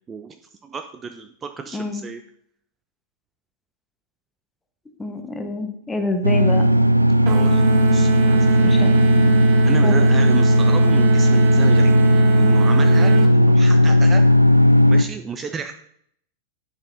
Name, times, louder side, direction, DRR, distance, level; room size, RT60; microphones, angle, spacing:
voice 1, 0.1-2.2 7.2-8.7 9.6-12.0 12.4-14.2 14.9-15.7, right 5 dB, 20° right, 8 dB, 0.5 m, -32 dB
voice 2, 1.7-2.0 5.0-6.7 8.6-8.9 9.8-10.0, left 3 dB, 10° left, 5 dB, 1.2 m, -27 dB
sound 1, 6.2-15.0, equal, 85° right, 0.4 m, -15 dB
sound 2, 7.3-13.3, right 9 dB, 40° right, 0.9 m, -28 dB
11.0 x 6.6 x 2.7 m, 0.68 s
figure-of-eight pair, 90°, 0 cm